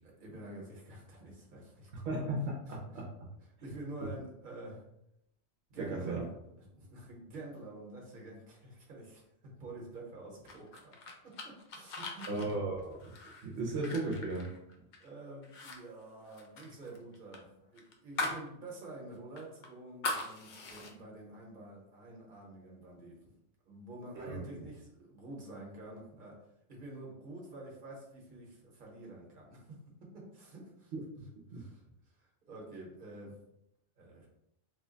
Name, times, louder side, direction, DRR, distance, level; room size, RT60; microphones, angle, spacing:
voice 1, 0.0-2.2 2.7-3.0 3.6-4.8 5.7-6.3 6.6-10.9 11.2-12.9 15.0-23.2 23.7-26.4 26.7-30.9 31.5-31.8 32.2-33.4 34.0-34.3, right 1 dB, 45° right, -2 dB, 1.1 m, -48 dB
voice 2, 2.0-3.3 5.8-6.2 12.3-13.1 13.4-14.5 24.2-24.4 30.9-31.6, right 2 dB, 75° right, -2 dB, 0.9 m, -36 dB
sound 1, 10.5-15.1 15.4-18.5 18.8-18.9 19.4-20.9, left 2 dB, 55° left, 0.6 m, -40 dB
3.1 x 2.1 x 3.7 m, 0.79 s
omnidirectional pair, 1.1 m